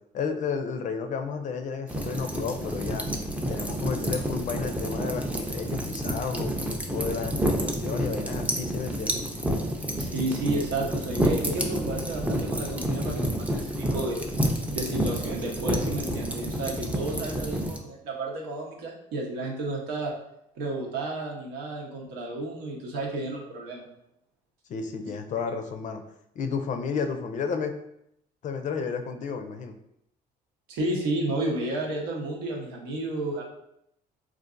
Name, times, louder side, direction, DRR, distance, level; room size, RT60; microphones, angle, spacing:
voice 1, 0.1-3.1 3.5-6.5 6.9-9.2 24.7-26.0 26.4-27.7 28.4-29.8, left 5 dB, 45° left, 6 dB, 0.4 m, -32 dB
sound 1, 1.9-17.8, right 1 dB, 10° right, 0.4 m, -29 dB
voice 2, 10.0-14.2 14.7-20.1 20.5-23.9 30.7-33.4, right 2 dB, 90° right, -1 dB, 0.9 m, -32 dB
3.8 x 2.5 x 2.5 m, 0.76 s
cardioid pair, 110°, 17 cm